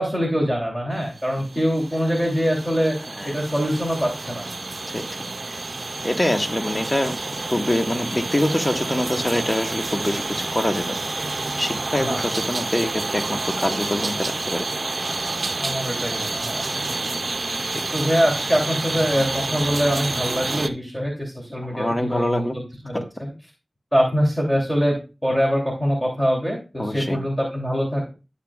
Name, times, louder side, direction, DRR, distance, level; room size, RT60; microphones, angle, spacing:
voice 1, 0.0-3.0 3.2-4.4 12.0-12.3 15.5-17.0 17.9-23.3 23.9-25.0 25.2-28.1, equal, 10° left, -2 dB, 3.0 m, -24 dB
sound 1, 1.1-20.7, right 3 dB, 60° right, 0.5 m, -29 dB
voice 2, 6.0-7.2 7.5-11.0 11.5-14.7 17.7-17.8 21.6-22.6 22.9-23.0 26.8-27.2, left 1 dB, 25° left, 4 dB, 1.3 m, -25 dB
12.5 x 6.7 x 2.4 m, 0.31 s
wide cardioid pair, 65°, 0 cm